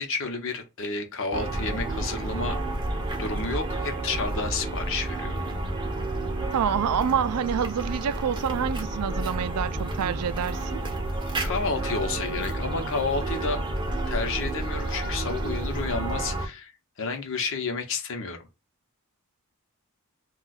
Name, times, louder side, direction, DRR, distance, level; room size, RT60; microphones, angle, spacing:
voice 1, 0.0-2.6 3.2-5.4 11.4-13.6 14.1-16.7 17.0-18.4, left 4 dB, 60° left, 0.8 m, -30 dB
sound 1, 1.3-16.5, right 2 dB, 20° right, 0.5 m, -30 dB
voice 2, 6.5-10.8, right 8 dB, 85° right, 0.3 m, -27 dB
2.3 x 2.3 x 4.0 m
head